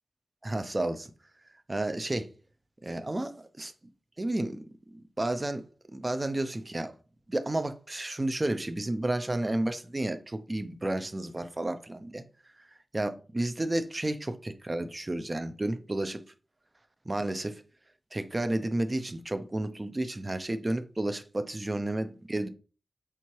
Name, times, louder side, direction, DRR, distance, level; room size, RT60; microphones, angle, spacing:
voice 1, 0.4-1.1 1.7-2.3 2.8-3.7 4.2-5.6 5.9-6.9 7.3-12.2 12.9-16.2 17.1-17.6 18.1-22.5, right 1 dB, 25° right, 0.4 m, -31 dB
4.4 x 3.5 x 3.1 m
wide cardioid pair, 130°, 0 cm